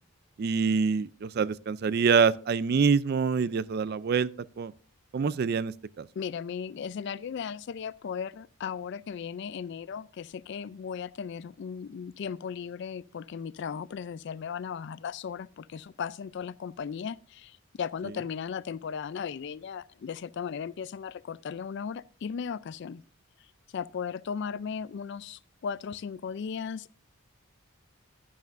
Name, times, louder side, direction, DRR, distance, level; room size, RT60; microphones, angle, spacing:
voice 1, 0.4-4.3 4.6-4.7 5.1-6.1, right 5 dB, 45° right, 0.3 m, -25 dB
voice 2, 6.2-23.0 23.7-27.0, left 6 dB, 50° left, 0.3 m, -36 dB
11.5 x 10.5 x 2.5 m
head